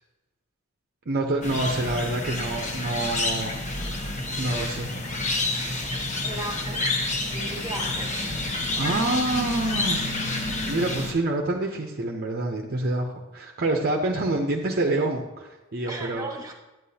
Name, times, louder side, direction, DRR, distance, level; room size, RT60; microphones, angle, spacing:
voice 1, 1.1-4.1 4.4-4.9 8.8-10.0 10.7-16.3, right 2 dB, 45° right, 2 dB, 0.7 m, -27 dB
sound 1, 1.4-11.1, left 2 dB, 35° left, 1.0 m, -29 dB
voice 2, 6.2-6.8 7.3-8.1 15.9-16.5, right 2 dB, 15° right, 0 dB, 1.4 m, -36 dB
9.5 x 9.1 x 2.8 m, 1.1 s
head